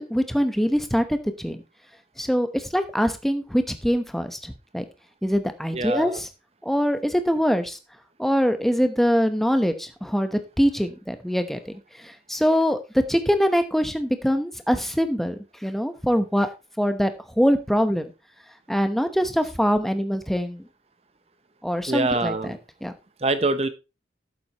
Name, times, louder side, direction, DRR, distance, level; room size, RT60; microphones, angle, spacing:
voice 1, 0.0-1.6 2.2-4.8 5.2-6.3 6.6-7.8 8.2-11.7 12.0-16.5 16.8-17.1 17.4-18.1 18.7-20.6 21.6-22.9, equal, ahead, 8 dB, 0.9 m, -23 dB
voice 2, 5.7-6.2 21.9-22.6 23.2-23.7, right 2 dB, 35° right, 12 dB, 0.8 m, -24 dB
12.0 x 7.8 x 2.9 m, 0.27 s
head